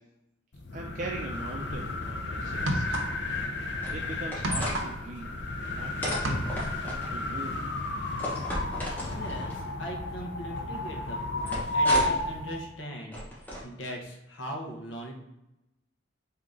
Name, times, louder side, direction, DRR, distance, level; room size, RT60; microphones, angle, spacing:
sound 1, 0.5-12.7, left 1 dB, 65° left, 0.6 m, -32 dB
voice 1, 0.7-3.0 3.6-5.3 5.7-6.5 6.8-7.6, right 2 dB, 40° right, 0 dB, 0.4 m, -41 dB
sound 2, 1.7-1.9 2.5-3.4 3.7-5.8 6.1-6.9, right 1 dB, 90° right, 0.7 m, -32 dB
sound 3, 3.8-4.8 6.0-7.1 8.2-9.5 11.5-12.3 13.1-13.6, equal, 10° left, 0.8 m, -34 dB
voice 2, 9.1-13.3 13.6-15.1, equal, 80° left, 1 dB, 0.9 m, -40 dB
3.7 x 2.8 x 3.7 m, 0.94 s
head